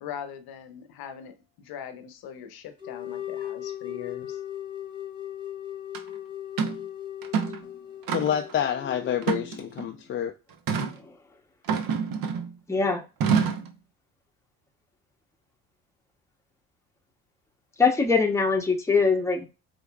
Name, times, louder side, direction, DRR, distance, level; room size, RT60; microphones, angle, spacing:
voice 1, 0.0-4.4, left 8 dB, 65° left, 0.8 m, -41 dB
sound 1, 2.8-9.6, left 11 dB, 10° right, 1.0 m, -38 dB
sound 2, 5.9-6.0 6.6-6.8 7.2-7.6 8.1-8.5 9.2-9.9 10.7-11.0 11.7-12.5 13.2-13.7, right 6 dB, 55° right, 0.8 m, -27 dB
voice 2, 8.1-10.3, left 9 dB, 30° left, 0.4 m, -28 dB
voice 3, 12.7-13.0 17.8-19.5, left 4 dB, 5° left, 0.8 m, -22 dB
4.4 x 2.6 x 2.3 m
supercardioid pair, 75°, 41 cm